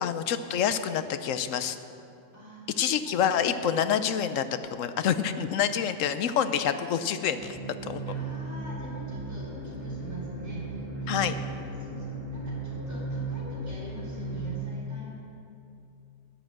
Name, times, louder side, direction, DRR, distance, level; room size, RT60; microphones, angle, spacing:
voice 1, 0.0-1.8 2.8-4.4 4.7-7.6 7.8-8.0 11.1-11.4, left 8 dB, 80° left, 11 dB, 1.0 m, -27 dB
voice 2, 2.3-3.4 8.1-15.1, equal, 60° right, -7 dB, 3.9 m, -45 dB
sound 1, 7.3-14.6, right 2 dB, 10° right, 3.5 m, -36 dB
11.0 x 10.0 x 7.5 m, 2.7 s
omnidirectional pair, 1.3 m